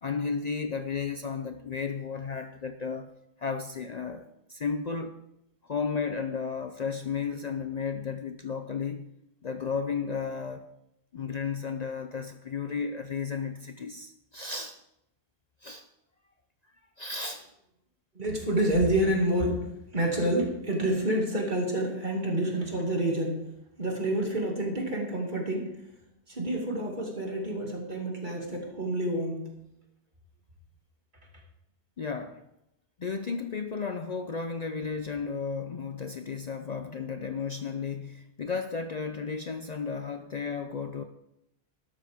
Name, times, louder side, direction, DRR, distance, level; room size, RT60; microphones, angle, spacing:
voice 1, 0.0-3.1 3.4-5.2 5.6-9.1 9.4-10.7 11.1-14.8 15.6-15.9 17.0-17.5 32.0-32.4 33.0-41.0, left 5 dB, 45° left, 8 dB, 0.6 m, -33 dB
voice 2, 18.2-23.4 23.8-25.7 26.3-29.5, right 1 dB, 45° right, 0 dB, 2.5 m, -28 dB
12.5 x 12.5 x 3.6 m, 0.82 s
omnidirectional pair, 1.1 m